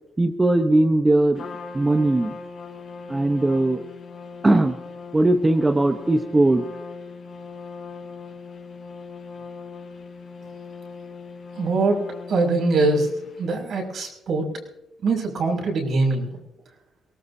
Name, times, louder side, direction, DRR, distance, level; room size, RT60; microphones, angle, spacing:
voice 1, 0.2-1.4 1.7-2.4 3.1-3.8 4.4-4.7 5.1-6.6, right 2 dB, 20° right, 5 dB, 1.0 m, -19 dB
Trumpet, 1.3-13.5, left 4 dB, 60° left, 4.9 m, -40 dB
voice 2, 11.6-13.1 13.4-14.5 15.0-16.4, right 3 dB, 60° right, -1 dB, 6.0 m, -23 dB
23.0 x 18.5 x 2.8 m, 0.90 s
cardioid pair, 90°, 0 cm